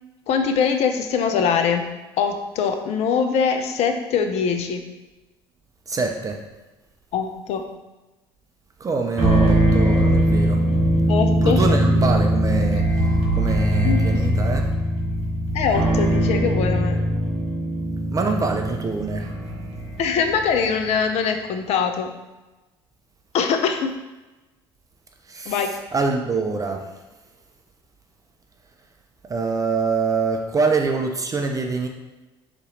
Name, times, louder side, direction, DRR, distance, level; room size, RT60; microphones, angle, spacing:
voice 1, 0.3-1.9 2.2-4.8 7.1-7.6 11.1-11.6 13.8-14.3 15.5-17.0 20.0-22.1 23.3-23.9 25.5-25.7, left 6 dB, 50° left, 6 dB, 0.5 m, -22 dB
voice 2, 5.9-6.4 8.8-10.6 11.4-14.7 18.1-19.3 25.2-27.0 29.2-31.9, right 4 dB, 25° right, 3 dB, 0.5 m, -25 dB
sound 1, 9.2-20.6, right 1 dB, 45° right, 1.3 m, -21 dB
4.0 x 3.0 x 3.9 m, 1.1 s
figure-of-eight pair, 60°, 14 cm